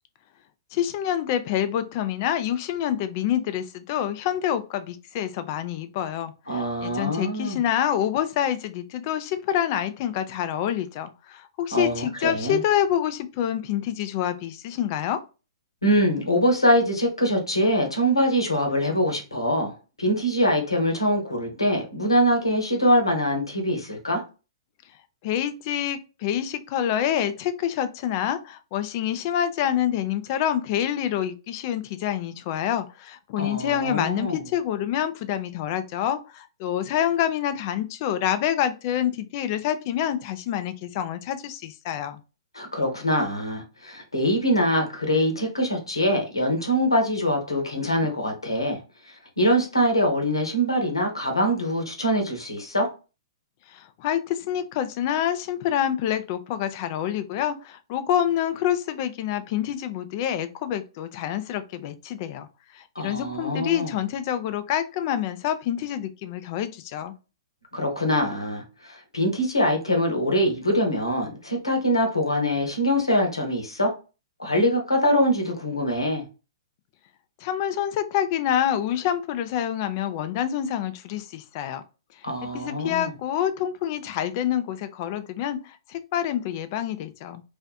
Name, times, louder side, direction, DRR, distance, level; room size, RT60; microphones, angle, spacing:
voice 1, 0.7-15.2 25.2-42.2 53.7-62.5 62.7-67.1 77.4-81.8 82.4-87.4, left 10 dB, 40° left, 0.4 m, -27 dB
voice 2, 6.5-7.6 11.7-12.6 15.8-24.2 33.4-34.4 42.5-52.9 62.9-63.9 67.7-73.9 74.4-76.2 82.2-83.1, equal, 85° left, 0.9 m, -24 dB
2.5 x 2.4 x 2.3 m
figure-of-eight pair, 115°, 2 cm